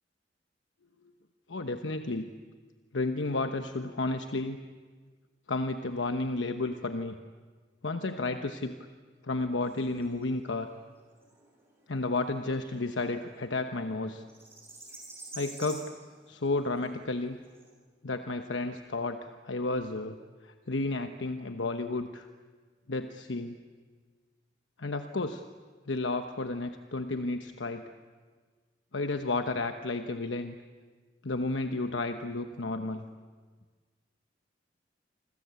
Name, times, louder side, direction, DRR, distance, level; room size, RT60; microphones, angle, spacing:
voice 1, 1.5-2.3 2.9-4.6 5.5-7.2 7.8-8.8 9.2-10.7 11.9-14.2 15.3-15.9 16.3-17.4 18.0-20.2 20.4-22.3 22.9-23.6 24.8-25.5 25.9-27.9 28.9-30.6 31.2-33.0, left 2 dB, 85° left, 7 dB, 1.0 m, -32 dB
sound 1, 9.6-17.7, right 2 dB, 15° right, 7.0 m, -51 dB
27.5 x 25.5 x 8.2 m, 1.5 s
head